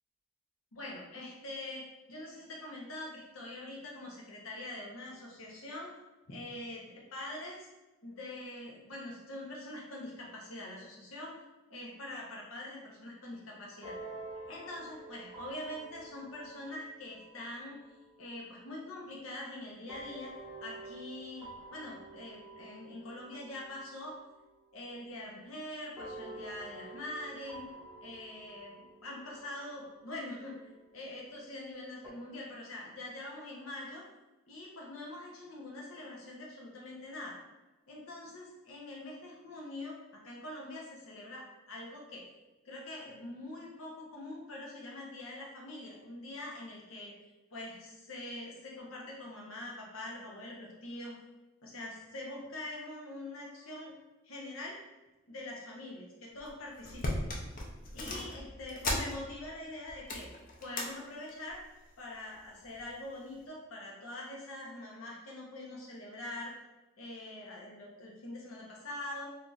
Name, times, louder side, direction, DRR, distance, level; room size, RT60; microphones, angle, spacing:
voice 1, 0.7-5.9 6.3-7.7 8.0-11.4 11.7-14.0 14.5-17.8 18.2-20.3 20.6-24.1 24.7-27.7 28.0-30.6 30.9-34.0 34.5-37.4 37.9-40.0 40.2-42.3 42.6-47.1 47.5-51.1 51.6-53.9 54.2-54.8 55.3-57.2 57.9-60.3 60.6-61.6 62.0-66.5 67.0-69.2, left 1 dB, 90° left, -2 dB, 0.9 m, -44 dB
sound 1, 13.8-18.6 19.9-24.2 24.5-25.5 26.0-30.9 32.0-32.1, right 2 dB, 20° right, 0.8 m, -49 dB
sound 2, 56.4-56.5 56.8-59.6 59.9-60.9 61.3-61.6 62.4-62.9 63.3-63.4, left 1 dB, 40° left, 0.5 m, -37 dB
2.8 x 2.4 x 3.9 m, 1.1 s
head